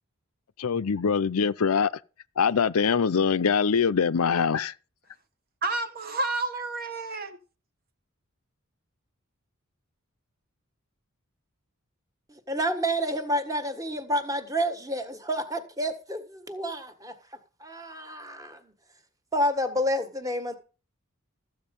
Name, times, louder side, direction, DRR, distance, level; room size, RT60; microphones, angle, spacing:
voice 1, 0.6-1.9 2.4-4.7, left 6 dB, 90° left, 0.6 m, -23 dB
voice 2, 5.6-7.4, right 2 dB, 45° right, 1.4 m, -30 dB
voice 3, 12.3-17.1 17.6-18.7 19.3-20.6, equal, 15° right, 1.5 m, -29 dB
14.0 x 8.1 x 5.4 m
head